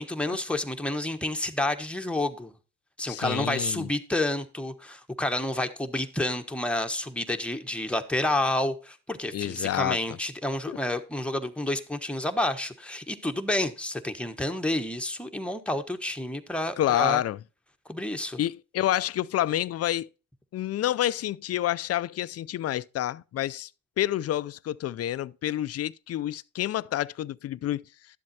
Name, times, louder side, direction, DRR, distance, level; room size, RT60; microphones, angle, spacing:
voice 1, 0.0-2.5 3.0-17.2 17.9-18.4, left 1 dB, 5° left, 1.2 m, -29 dB
voice 2, 3.1-3.9 9.3-10.0 10.7-10.8 16.8-17.4 18.4-20.1 20.5-23.7 24.0-27.8, left 13 dB, 55° left, 0.5 m, -28 dB
12.0 x 7.6 x 2.8 m
cardioid pair, 90°, 30 cm